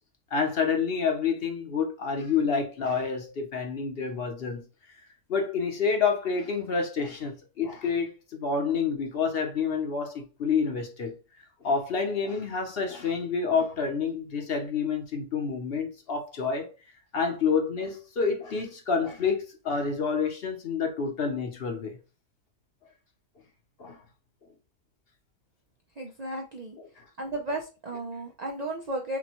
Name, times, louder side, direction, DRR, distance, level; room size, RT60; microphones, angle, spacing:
voice 1, 0.3-4.6 5.3-11.1 11.6-16.7 17.1-22.0 23.8-24.0 27.0-27.1, left 5 dB, 50° left, 0.9 m, -28 dB
voice 2, 26.0-26.8 27.2-29.2, right 2 dB, 90° right, 0.3 m, -34 dB
6.0 x 2.2 x 2.9 m
omnidirectional pair, 1.5 m